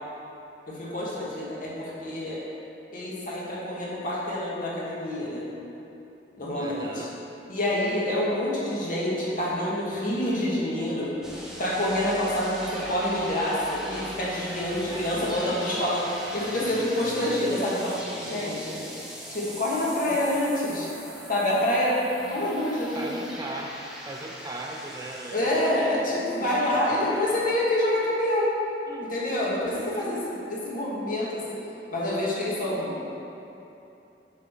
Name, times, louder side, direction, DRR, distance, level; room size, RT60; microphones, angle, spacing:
voice 1, 0.7-2.4 2.9-5.4 6.4-7.1 7.5-11.1 11.6-16.0 16.3-18.8 19.3-20.9 21.3-23.1 25.3-28.5 29.0-30.2 30.5-31.5 31.9-33.1, left 1 dB, 50° left, -6 dB, 1.6 m, -27 dB
voice 2, 6.6-7.2 14.7-15.8 17.2-17.3 20.1-20.8 21.7-22.0 22.9-23.8 24.1-25.7 26.0-27.6 28.9-29.1 29.7-30.4, right 2 dB, 20° right, 1 dB, 0.4 m, -40 dB
sound 1, 11.2-25.4, equal, 5° right, 0.9 m, -40 dB
7.6 x 3.7 x 5.9 m, 2.9 s
head